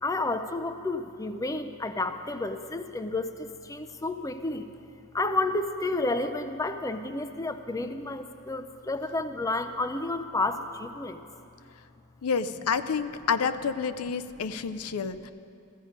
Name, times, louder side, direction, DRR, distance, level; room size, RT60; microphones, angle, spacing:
voice 1, 0.0-4.7 5.1-11.2, left 2 dB, 15° left, 9 dB, 0.5 m, -31 dB
voice 2, 12.2-15.3, left 6 dB, 80° left, 12 dB, 0.5 m, -29 dB
15.0 x 14.5 x 5.1 m, 2.6 s
head